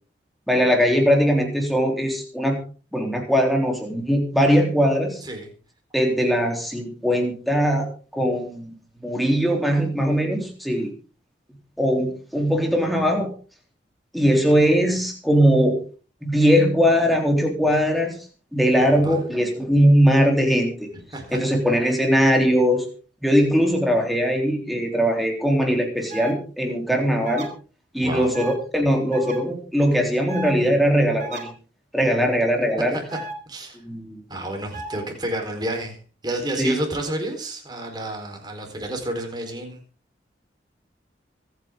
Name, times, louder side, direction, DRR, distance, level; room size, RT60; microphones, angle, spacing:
voice 1, 0.5-2.6 2.9-5.2 5.9-7.9 8.1-8.7 9.0-10.9 11.8-13.3 14.1-15.8 16.2-18.2 18.5-20.9 21.3-22.9 23.2-27.5 27.9-31.5 31.9-33.0 33.8-34.2 36.6-36.8, equal, ahead, 1 dB, 3.6 m, -20 dB
voice 2, 18.8-19.2 21.1-21.4 28.0-28.3 32.8-33.2 33.5-33.8 34.3-36.0 36.2-39.8, right 1 dB, 20° right, 3 dB, 4.3 m, -30 dB
sound 1, 26.1-26.3 27.2-27.5 28.3-28.6 29.1-29.4 30.3-30.5 31.2-31.4 33.1-33.3 34.7-35.0, right 3 dB, 40° right, 3.6 m, -33 dB
25.0 x 9.4 x 3.8 m, 0.37 s
head